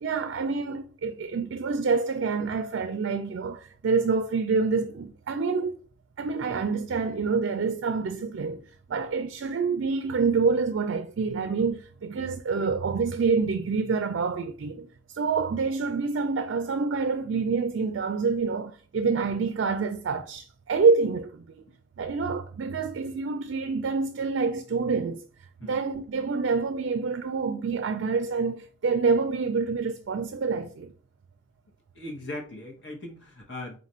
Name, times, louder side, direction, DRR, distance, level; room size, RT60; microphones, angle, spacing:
voice 1, 0.0-5.7 6.2-8.6 8.9-14.9 15.1-21.4 22.0-25.3 25.6-30.9, right 4 dB, 60° right, 0.3 m, -27 dB
voice 2, 31.9-33.8, left 1 dB, 55° left, 1.0 m, -39 dB
3.9 x 2.5 x 4.2 m
head